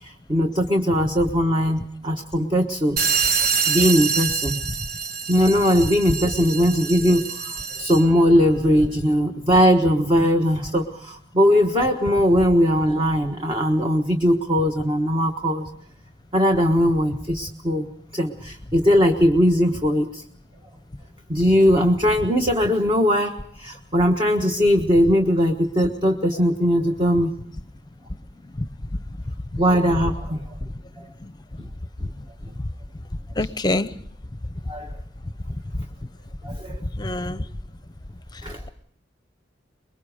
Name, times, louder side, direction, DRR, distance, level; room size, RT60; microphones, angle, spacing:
voice 1, 0.0-3.0 3.7-4.6 5.3-15.7 16.3-17.9 18.1-20.2 21.3-23.3 23.6-27.3 29.6-30.4 33.4-33.5 34.7-34.9 36.4-36.8 38.4-38.7, equal, 25° right, 3 dB, 1.3 m, -20 dB
sound 1, 3.0-8.2, right 6 dB, 50° right, 1.1 m, -26 dB
voice 2, 33.4-33.9 37.0-37.5, left 2 dB, 20° left, 13 dB, 0.8 m, -24 dB
24.5 x 22.0 x 5.0 m, 0.63 s
head